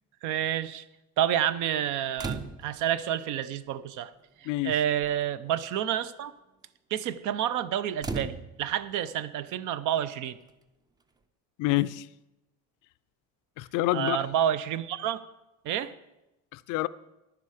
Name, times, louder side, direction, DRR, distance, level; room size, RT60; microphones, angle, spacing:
voice 1, 0.2-0.8 1.2-4.1 4.4-6.3 6.9-10.4 13.9-15.2 15.6-15.9, right 10 dB, 65° right, 0.6 m, -29 dB
sound 1, 2.2-2.9 4.0-4.1 4.4-4.7 5.0-5.3 8.0-8.9 10.5-10.6, right 3 dB, 10° right, 0.4 m, -36 dB
voice 2, 11.6-12.1 13.6-14.3 16.5-16.9, left 17 dB, 65° left, 0.5 m, -27 dB
10.5 x 9.8 x 4.9 m
cardioid pair, 145°, 33 cm